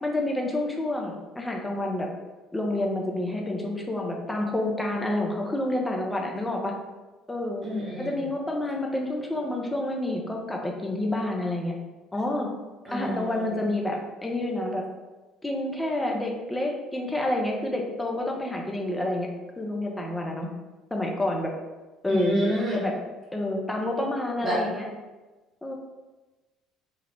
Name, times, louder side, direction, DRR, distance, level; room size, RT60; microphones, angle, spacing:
voice 1, 0.0-2.1 2.5-6.7 7.3-7.7 8.0-11.7 12.1-12.5 12.9-14.8 15.4-19.3 19.6-20.5 20.9-21.5 22.0-22.4 22.7-22.9 23.3-24.8 25.6-25.8, left 1 dB, 10° left, 0 dB, 0.6 m, -28 dB
voice 2, 7.6-8.2 12.9-13.7 22.1-22.8 24.4-24.6, equal, 30° right, -4 dB, 1.2 m, -29 dB
3.0 x 2.3 x 3.4 m, 1.2 s
figure-of-eight pair, 55°, 0 cm